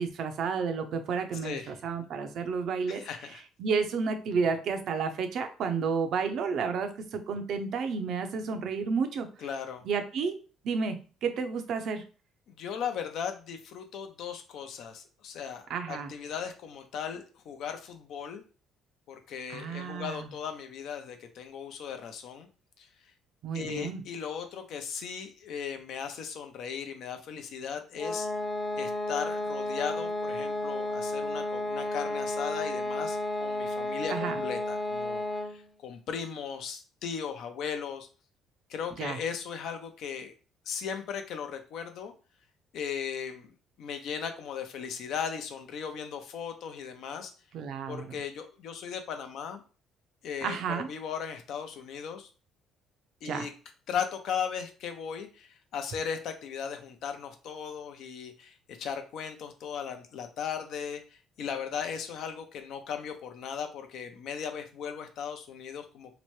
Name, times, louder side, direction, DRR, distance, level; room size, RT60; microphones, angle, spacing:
voice 1, 0.0-3.0 3.6-9.3 9.8-10.4 10.6-11.0 11.2-12.0 15.7-16.1 19.5-20.3 23.4-24.0 34.1-34.4 39.0-39.2 47.5-48.2 50.4-50.9 53.2-53.5, right 5 dB, 65° right, 7 dB, 0.5 m, -31 dB
voice 2, 1.4-1.8 2.9-3.4 9.4-9.8 12.5-18.4 19.1-22.5 22.8-22.9 23.5-28.3 28.7-35.2 35.5-38.1 38.7-40.3 40.7-42.1 42.7-43.5 43.8-47.3 47.9-49.6 50.2-52.3 53.2-53.5 53.9-61.0 61.4-66.1, left 7 dB, 70° left, 7 dB, 0.5 m, -37 dB
sound 1, 28.0-35.7, left 2 dB, 15° left, 0.6 m, -32 dB
2.9 x 2.1 x 3.1 m, 0.36 s
supercardioid pair, 85°, 0 cm